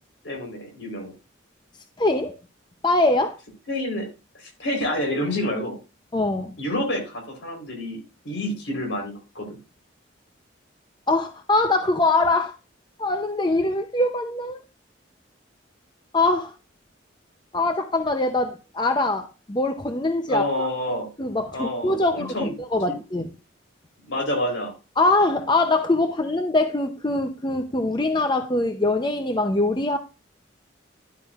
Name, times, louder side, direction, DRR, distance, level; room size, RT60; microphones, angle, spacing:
voice 1, 0.2-1.1 3.7-4.1 4.3-5.8 6.6-9.6 20.3-21.1 21.5-22.5 22.9-23.0 24.1-24.7, left 1 dB, 70° left, 3.9 m, -28 dB
voice 2, 2.0-2.4 2.8-3.4 6.1-6.5 11.1-12.5 13.0-14.6 16.1-16.5 17.5-20.7 21.2-23.3 25.0-30.0, left 2 dB, 25° left, 0.6 m, -23 dB
11.0 x 8.5 x 2.4 m
head